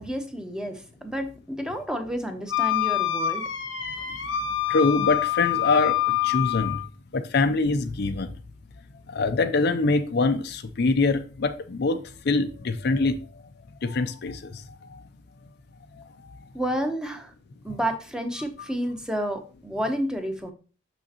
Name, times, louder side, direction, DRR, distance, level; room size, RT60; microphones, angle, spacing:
voice 1, 0.0-3.4 16.5-17.3 17.6-20.5, equal, 5° right, 0.9 m, -30 dB
Wind instrument woodwind instrument, 2.5-6.9, left 12 dB, 90° left, 1.2 m, -26 dB
voice 2, 4.7-6.8 7.1-8.3 9.1-12.0 12.3-13.2 13.8-14.5, left 3 dB, 60° left, 0.5 m, -24 dB
6.3 x 6.2 x 2.9 m
head